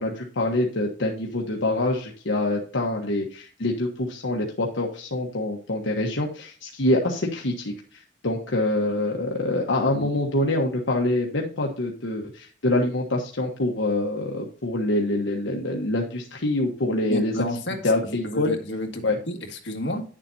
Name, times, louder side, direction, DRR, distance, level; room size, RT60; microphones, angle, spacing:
voice 1, 0.0-7.7 8.2-17.3 17.8-18.5 19.0-19.2, left 1 dB, 80° left, 0 dB, 1.3 m, -25 dB
voice 2, 17.1-17.8 18.0-20.0, left 1 dB, 65° left, 3 dB, 1.9 m, -31 dB
10.0 x 7.4 x 2.8 m, 0.40 s
head